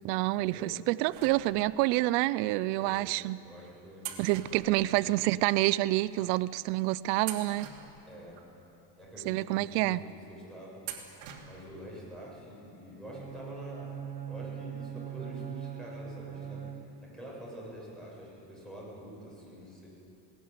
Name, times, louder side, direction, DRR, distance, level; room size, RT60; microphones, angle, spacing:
voice 1, 0.0-3.4 4.2-7.7 9.3-10.0, right 18 dB, 90° right, 17 dB, 0.6 m, -28 dB
sound 1, 1.1-2.0 2.8-2.9 4.0-5.4 5.7-5.8 6.6-6.8 7.2-8.5 9.0-9.1 10.8-11.8 12.1-12.2 13.4-13.5 13.8-13.9, right 9 dB, 65° right, 2.9 m, -44 dB
voice 2, 3.4-4.1 4.5-5.2 8.0-8.5 9.0-10.8 11.4-14.0 14.3-19.9, equal, ahead, -5 dB, 7.8 m, -46 dB
Bowed string instrument, 13.1-17.3, right 9 dB, 15° right, 0.9 m, -41 dB
20.5 x 18.5 x 9.6 m, 2.8 s
cardioid pair, 150°, 48 cm